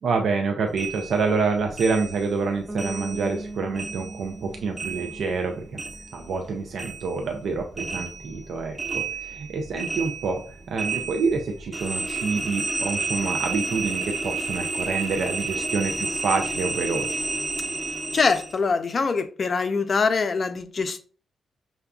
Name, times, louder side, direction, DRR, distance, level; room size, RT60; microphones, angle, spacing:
voice 1, 0.0-5.8 6.1-10.4 10.7-17.2, right 4 dB, 70° right, 0.5 m, -27 dB
sound 1, 0.8-3.5 3.7-6.5 6.8-18.6, right 3 dB, 30° right, 1.0 m, -31 dB
Bass guitar, 2.7-6.5, right 2 dB, 10° right, 0.6 m, -39 dB
voice 2, 18.1-21.0, left 4 dB, 50° left, 0.5 m, -23 dB
5.5 x 2.3 x 2.3 m
hypercardioid pair, 40°, 0 cm